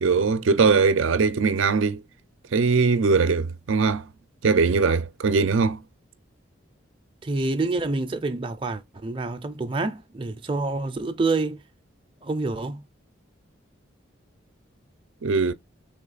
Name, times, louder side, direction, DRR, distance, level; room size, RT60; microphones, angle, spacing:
voice 1, 0.0-2.0 2.5-4.0 4.4-5.8 15.2-15.5, right 4 dB, 80° right, 0.5 m, -21 dB
voice 2, 7.2-11.6 12.2-12.8, right 3 dB, 25° right, 0.4 m, -27 dB
3.5 x 3.1 x 3.9 m
head